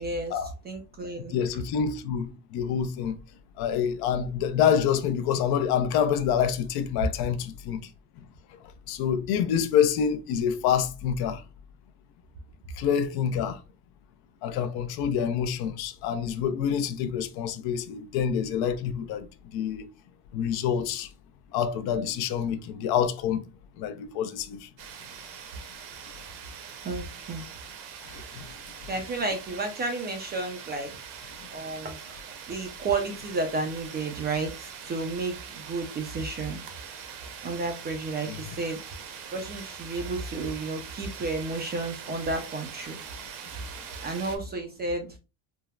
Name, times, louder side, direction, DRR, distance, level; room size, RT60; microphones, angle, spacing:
voice 1, 0.0-1.5 26.8-27.5 28.9-30.9 31.5-32.2 32.5-36.6 37.4-38.8 39.3-43.0 44.0-45.2, right 3 dB, 25° right, 0.3 m, -32 dB
voice 2, 1.3-3.2 3.6-7.8 8.9-11.4 12.8-13.6 14.4-19.3 19.5-19.9 20.3-21.1 21.5-23.4 23.8-24.6 38.3-38.4, left 8 dB, 55° left, 0.5 m, -27 dB
sound 1, 24.8-44.4, right 7 dB, 60° right, 0.8 m, -43 dB
3.5 x 2.1 x 2.2 m
supercardioid pair, 115°, 47 cm